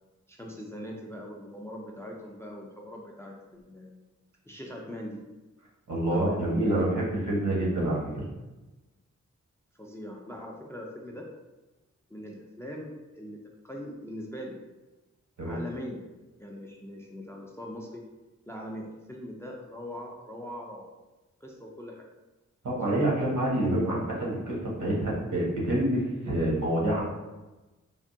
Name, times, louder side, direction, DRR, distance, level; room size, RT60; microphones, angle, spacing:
voice 1, 0.3-3.9 4.4-5.2 6.1-6.4 9.8-11.3 12.1-13.4 13.6-14.6 15.5-16.0 16.4-18.0 18.5-20.9 21.4-22.1 22.9-23.0, equal, 10° left, -1 dB, 0.3 m, -41 dB
voice 2, 5.9-8.2 15.4-15.6 22.6-27.0, right 1 dB, 75° right, -4 dB, 1.1 m, -27 dB
3.4 x 2.1 x 2.6 m, 1.1 s
wide cardioid pair, 100°, 30 cm